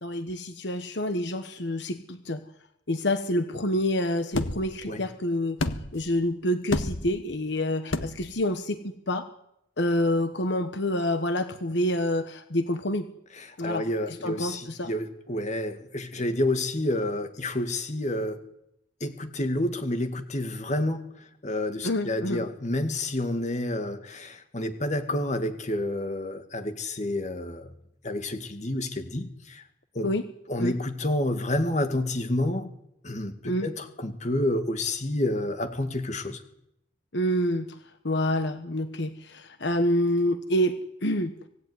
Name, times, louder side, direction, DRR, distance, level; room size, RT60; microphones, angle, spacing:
voice 1, 0.0-2.4 2.9-5.6 5.9-8.8 9.1-9.3 9.8-13.1 13.6-13.8 14.2-14.9 21.8-22.4 30.0-30.2 30.6-30.7 33.4-33.7 37.1-37.7 38.0-41.3, left 1 dB, 65° left, 9 dB, 1.3 m, -27 dB
sound 1, 4.3-4.7 5.6-6.1 6.7-7.2 7.9-8.3, left 2 dB, 85° left, 1.5 m, -29 dB
voice 2, 13.3-18.4 19.0-21.0 21.4-27.7 28.0-29.6 30.0-30.1 30.5-32.7 33.0-36.4, left 1 dB, 35° left, 8 dB, 2.0 m, -29 dB
25.0 x 17.5 x 9.6 m, 0.80 s
head